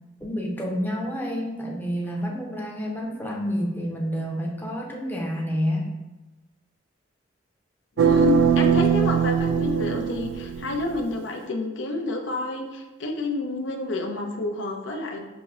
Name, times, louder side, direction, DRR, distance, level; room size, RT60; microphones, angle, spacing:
voice 1, 0.2-5.9, equal, 10° left, -2 dB, 0.5 m, -29 dB
voice 2, 8.0-15.2, left 3 dB, 90° left, 2 dB, 0.6 m, -29 dB
sound 1, 8.0-11.0, right 7 dB, 85° right, 0.3 m, -21 dB
5.9 x 3.0 x 2.4 m, 1.1 s
head